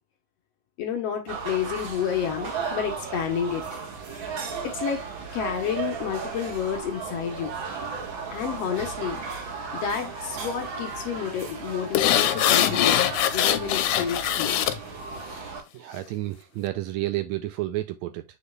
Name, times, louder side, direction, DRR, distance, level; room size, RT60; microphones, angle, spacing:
voice 1, 0.8-3.8 4.6-5.0 5.3-7.6 8.3-9.2 9.7-13.1 13.3-14.6, left 8 dB, 65° left, 1.7 m, -30 dB
sound 1, 1.3-15.6, right 5 dB, 50° right, 1.6 m, -35 dB
sound 2, 12.0-14.8 15.2-15.3, left 12 dB, 85° left, 2.1 m, -22 dB
voice 2, 15.7-18.2, right 16 dB, 80° right, 1.7 m, -30 dB
7.3 x 6.3 x 2.3 m
omnidirectional pair, 3.6 m